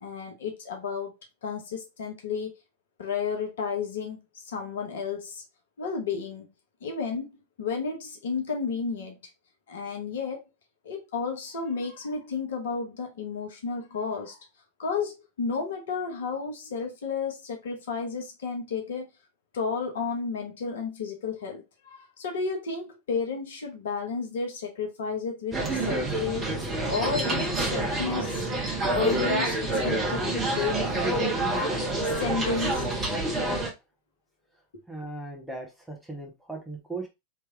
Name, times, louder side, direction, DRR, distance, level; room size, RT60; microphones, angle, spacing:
voice 1, 0.0-1.1 1.4-2.5 3.0-4.2 4.5-5.4 5.8-6.4 6.8-7.3 7.6-9.2 9.7-10.4 10.8-14.4 14.8-19.1 19.5-26.5 26.9-28.4 28.9-30.8 31.2-31.4 32.0-32.9 34.7-34.8, left 5 dB, 60° left, 1.0 m, -32 dB
Lively Lunch Hour at Nautilus Diner Madison NJ, 25.5-33.7, right 2 dB, 20° right, 1.4 m, -27 dB
voice 2, 34.9-37.1, right 3 dB, 5° right, 1.4 m, -38 dB
3.3 x 3.2 x 3.6 m
figure-of-eight pair, 90°, 0 cm